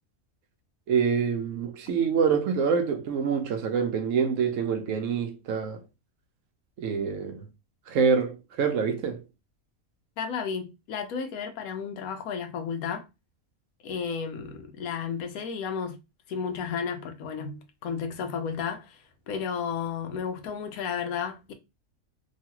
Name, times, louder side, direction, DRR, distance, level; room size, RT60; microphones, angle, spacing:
voice 1, 0.9-5.8 6.8-7.5 7.9-9.2, right 6 dB, 70° right, 0.9 m, -26 dB
voice 2, 10.2-13.1 13.8-16.0 16.3-19.0 19.3-21.5, left 6 dB, 90° left, 1.1 m, -33 dB
3.0 x 2.4 x 2.8 m
omnidirectional pair, 1.5 m